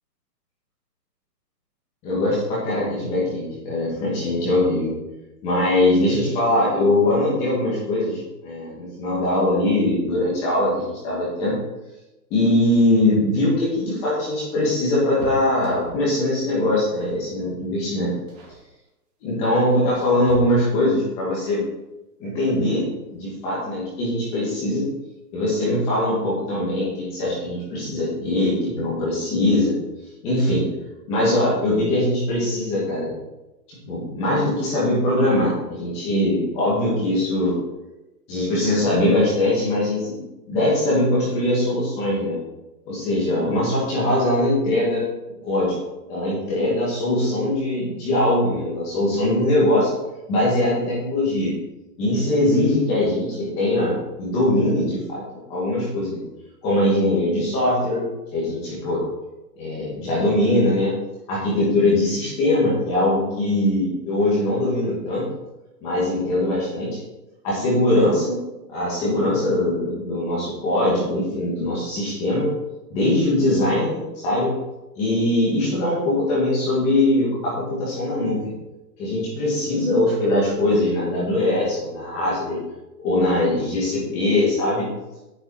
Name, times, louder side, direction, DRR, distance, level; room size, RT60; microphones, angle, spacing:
voice 1, 2.0-5.0 5.4-11.5 12.3-18.1 19.2-21.6 22.2-24.9 25.3-29.7 30.2-30.6 31.1-33.1 33.8-37.5 38.3-40.1 40.5-42.4 42.9-45.0 45.4-45.8 46.1-49.9 50.3-51.5 52.0-56.2 56.6-58.0 58.3-59.0 59.6-60.9 61.3-65.3 65.8-67.0 67.4-68.4 68.7-72.5 72.9-74.5 74.9-78.4 79.0-82.6 83.0-84.9, left 1 dB, 10° left, -7 dB, 2.3 m, -21 dB
sound 1, 13.5-16.2 17.0-17.3 17.6-17.9 18.3-18.7 19.5-21.0 22.7-22.8 23.2-23.3 24.4-24.9 25.2-25.3 25.6-25.8, equal, 40° right, 3.1 m, -41 dB
11.0 x 9.7 x 4.3 m, 0.98 s
hypercardioid pair, 175°, 50 cm